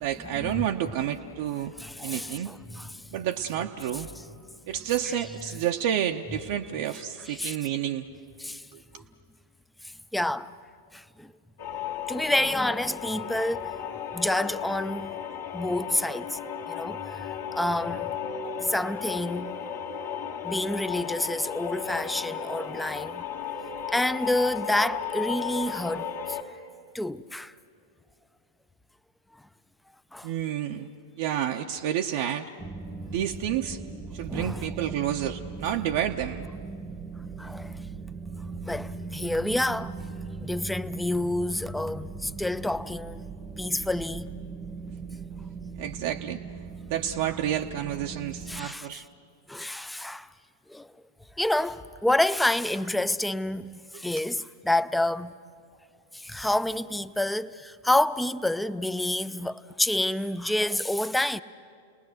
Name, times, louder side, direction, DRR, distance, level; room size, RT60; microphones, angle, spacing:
voice 1, 0.0-1.7 2.0-2.5 3.1-4.1 4.7-8.1 8.7-9.0 30.2-30.9 31.2-32.5 33.1-33.8 34.1-36.5 45.8-46.4 46.9-49.0 53.9-54.0, right 10 dB, 50° right, 0.7 m, -30 dB
voice 2, 1.8-3.1 7.3-7.6 8.4-8.7 10.1-10.5 10.9-11.3 12.1-13.7 14.1-15.2 15.5-16.4 16.7-18.1 18.6-19.6 20.4-23.2 23.9-26.4 26.9-27.5 30.1-30.3 34.3-34.9 37.4-37.7 38.6-39.9 40.4-43.2 43.6-44.3 48.5-49.0 49.5-50.3 50.7-50.9 51.4-55.3 56.1-61.4, left 1 dB, 5° left, 0.5 m, -28 dB
sound 1, 11.6-26.4, left 8 dB, 55° left, 1.7 m, -35 dB
sound 2, 32.6-48.7, right 4 dB, 15° right, 1.0 m, -39 dB
29.5 x 20.0 x 6.5 m
figure-of-eight pair, 95°, 0 cm